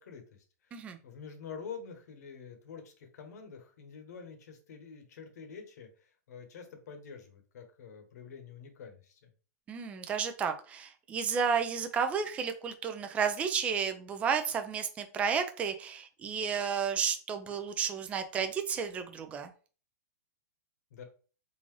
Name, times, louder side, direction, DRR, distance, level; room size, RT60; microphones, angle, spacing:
voice 1, 0.0-9.2 20.9-21.0, left 6 dB, 65° left, 6 dB, 1.0 m, -47 dB
voice 2, 9.7-19.5, right 6 dB, 15° right, 7 dB, 0.3 m, -32 dB
3.7 x 2.5 x 3.1 m, 0.38 s
hypercardioid pair, 155°, 10 cm